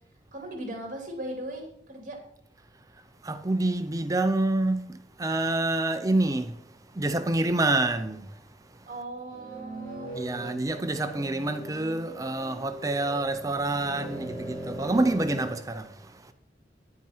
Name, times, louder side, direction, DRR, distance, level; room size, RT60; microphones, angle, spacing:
voice 1, 0.3-2.2 8.8-10.6, right 1 dB, 45° right, 2.8 m, -38 dB
voice 2, 3.2-8.9 10.2-16.3, right 2 dB, 20° right, 0.5 m, -28 dB
sound 1, 9.3-15.5, right 2 dB, 25° left, 3.1 m, -40 dB
10.5 x 9.9 x 4.4 m
head